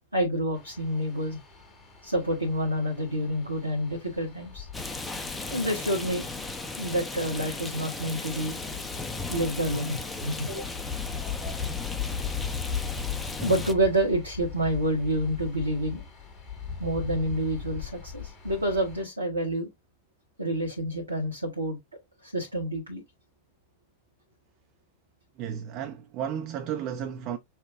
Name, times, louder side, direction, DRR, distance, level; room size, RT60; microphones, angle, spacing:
voice 1, 0.1-1.4 2.0-4.7 5.5-6.2 6.8-8.6 9.3-10.7 13.4-16.0 16.8-19.7 20.4-21.8 22.2-23.0, right 1 dB, 80° right, 1.0 m, -28 dB
sound 1, 0.5-19.0, left 7 dB, 30° left, 1.4 m, -39 dB
Rain, 4.7-13.7, left 3 dB, 10° left, 0.7 m, -36 dB
voice 2, 25.4-27.4, right 9 dB, 40° right, 0.6 m, -33 dB
5.8 x 2.2 x 3.5 m
figure-of-eight pair, 90°, 0 cm